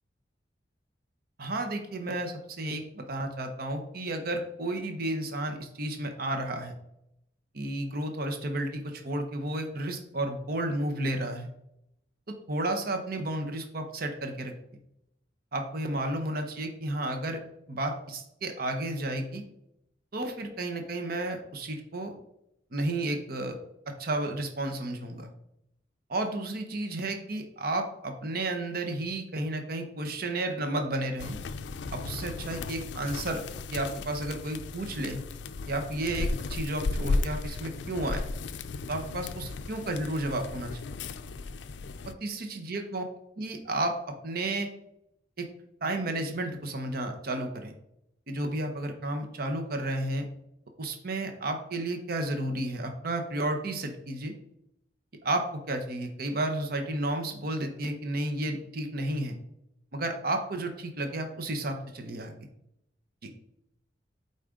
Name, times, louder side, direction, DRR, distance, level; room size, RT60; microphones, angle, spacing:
voice 1, 1.4-6.7 7.5-11.5 12.3-14.5 15.5-17.4 17.7-19.4 20.1-22.1 22.7-23.6 23.9-25.3 26.1-31.4 31.9-33.4 33.7-35.2 35.7-38.2 38.9-40.8 42.0-43.0 43.4-43.9 44.2-44.7 45.4-45.5 45.8-47.7 48.3-50.3 50.8-54.3 55.2-59.4 59.9-62.5, right 1 dB, 55° right, 5 dB, 0.9 m, -32 dB
sound 1, 31.2-42.1, left 3 dB, 75° left, 0.4 m, -35 dB
8.6 x 4.1 x 3.7 m, 0.80 s
head